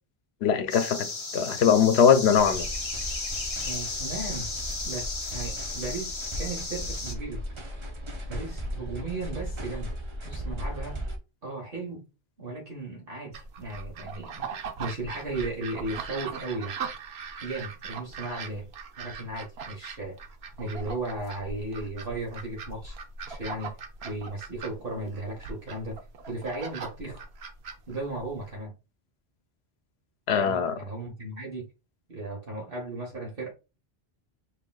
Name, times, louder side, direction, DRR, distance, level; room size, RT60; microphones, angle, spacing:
voice 1, 0.4-2.7 30.3-30.8, left 7 dB, 85° left, 0.9 m, -21 dB
sound 1, 0.7-7.1, left 3 dB, 35° left, 0.8 m, -34 dB
sound 2, 2.4-11.2, equal, 35° right, 0.6 m, -36 dB
voice 2, 3.6-4.5 4.8-7.4 8.3-10.0 10.2-11.0 11.4-12.1 12.4-16.8 17.4-18.7 19.0-20.2 20.6-23.0 23.3-23.7 24.0-27.2 27.9-28.7 30.3-31.7 32.1-33.5, right 2 dB, 60° right, 1.3 m, -36 dB
sound 3, 13.3-28.5, right 5 dB, 80° right, 1.0 m, -40 dB
5.7 x 2.8 x 2.3 m
omnidirectional pair, 1.0 m